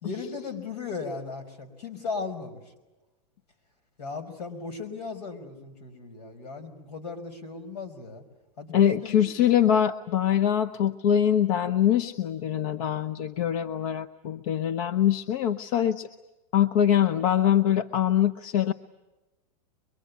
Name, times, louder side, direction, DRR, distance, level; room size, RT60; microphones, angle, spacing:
voice 1, 0.0-2.6 4.0-8.2 8.6-9.2, left 4 dB, 85° left, 9 dB, 5.2 m, -37 dB
voice 2, 8.7-16.1 16.5-18.7, left 10 dB, 60° left, 12 dB, 1.0 m, -23 dB
24.0 x 23.0 x 9.5 m, 1.1 s
hypercardioid pair, 130°, 20 cm